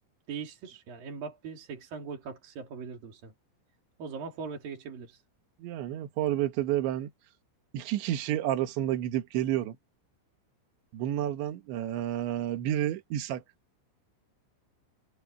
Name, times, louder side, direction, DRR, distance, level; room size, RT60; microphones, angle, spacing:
voice 1, 0.3-3.3 4.0-5.2, right 5 dB, 50° right, 4.3 m, -40 dB
voice 2, 5.6-7.1 7.7-9.8 10.9-13.4, right 12 dB, 70° right, 3.8 m, -30 dB
omnidirectional pair, 5.8 m